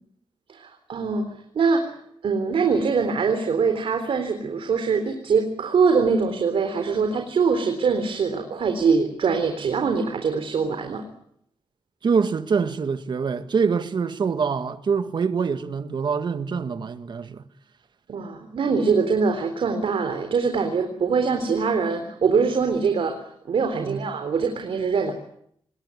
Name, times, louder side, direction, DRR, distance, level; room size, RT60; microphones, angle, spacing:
voice 1, 0.5-1.3 1.5-2.0 2.2-11.0 18.1-25.1, right 5 dB, 75° right, 3.8 m, -23 dB
voice 2, 12.0-17.4 23.7-24.0, right 5 dB, 55° right, 1.7 m, -25 dB
26.5 x 20.5 x 9.8 m
wide cardioid pair, 160°, 9 cm